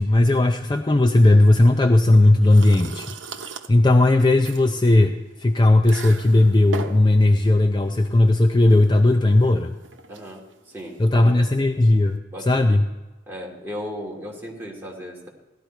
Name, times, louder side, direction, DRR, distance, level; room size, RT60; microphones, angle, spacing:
voice 1, 0.0-3.1 3.7-9.7 11.0-12.9, left 2 dB, 25° left, 5 dB, 0.5 m, -17 dB
sound 1, 1.2-12.2, right 4 dB, 80° right, 0.9 m, -40 dB
voice 2, 10.1-10.4 10.7-11.4 12.3-12.7 13.3-15.3, equal, 10° right, -3 dB, 2.5 m, -35 dB
16.5 x 12.0 x 4.5 m, 1.2 s
head